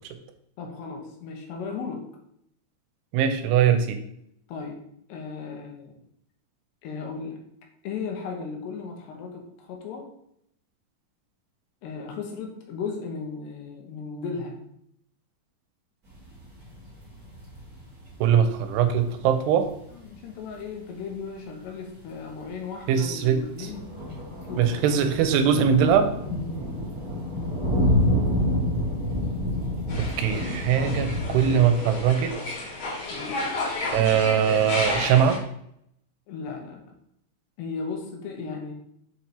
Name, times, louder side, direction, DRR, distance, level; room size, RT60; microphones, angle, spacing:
voice 1, 0.6-2.0 4.5-4.8 5.1-6.0 6.8-7.4 7.8-10.1 11.8-14.6 19.9-24.0 24.5-24.8 26.4-26.7 30.8-32.0 33.1-33.5 36.3-36.8 37.6-38.7, left 5 dB, 80° left, 2 dB, 3.3 m, -36 dB
voice 2, 3.1-4.0 18.2-19.7 22.9-23.7 24.6-26.1 30.0-32.3 33.9-35.4, right 8 dB, 85° right, 8 dB, 2.8 m, -21 dB
sound 1, 16.1-20.1 20.5-20.6 21.1-21.2 22.0-22.1 22.4-22.5 22.8-22.9 23.2-31.5, left 1 dB, 25° right, 2.3 m, -28 dB
sound 2, 29.9-35.4, left 2 dB, 50° left, 2.3 m, -32 dB
7.0 x 4.6 x 4.3 m, 0.73 s
omnidirectional pair, 4.8 m